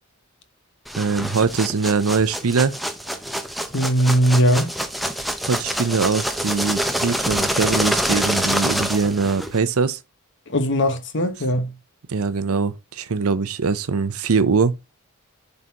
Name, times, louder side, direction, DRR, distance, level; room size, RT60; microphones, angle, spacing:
sound 1, 0.9-9.6, equal, ahead, 0.6 m, -26 dB
voice 1, 1.0-2.8 5.5-10.0 12.1-14.8, right 4 dB, 70° right, 0.6 m, -22 dB
voice 2, 3.7-4.7 10.5-11.7, equal, 55° left, 1.2 m, -19 dB
11.0 x 4.1 x 2.9 m
head